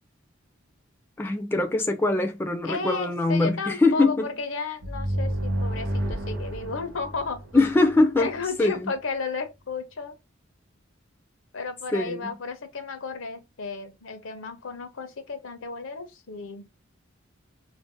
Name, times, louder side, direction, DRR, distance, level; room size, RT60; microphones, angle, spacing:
voice 1, 1.2-4.4 7.5-8.9 11.9-12.3, left 2 dB, 10° left, 0.4 m, -23 dB
voice 2, 2.6-7.7 8.2-10.1 11.5-16.7, left 4 dB, 80° left, 0.7 m, -33 dB
sound 1, 4.8-8.4, equal, 80° right, 0.9 m, -30 dB
2.5 x 2.1 x 3.6 m
head